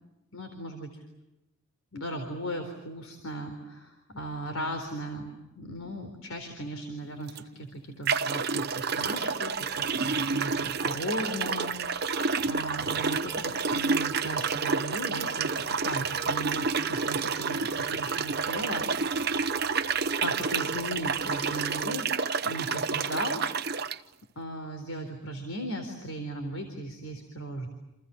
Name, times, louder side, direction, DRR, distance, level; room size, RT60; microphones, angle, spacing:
voice 1, 0.3-0.9 1.9-15.5 15.8-18.8 20.2-23.4 24.4-27.7, equal, 70° left, 5 dB, 4.1 m, -37 dB
sound 1, 7.3-7.4 8.1-24.0, right 5 dB, 50° right, 0.9 m, -29 dB
sound 2, 8.6-21.9, left 1 dB, 25° left, 3.0 m, -48 dB
29.5 x 28.0 x 7.1 m, 0.99 s
head